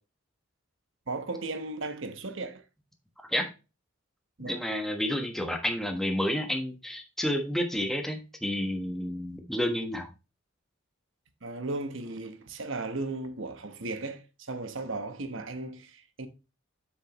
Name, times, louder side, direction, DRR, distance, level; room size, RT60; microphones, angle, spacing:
voice 1, 1.1-2.6 4.4-4.6 11.4-16.3, right 2 dB, 65° right, 1.0 m, -36 dB
voice 2, 4.4-10.1, equal, ahead, 1.2 m, -30 dB
7.6 x 6.4 x 3.0 m
head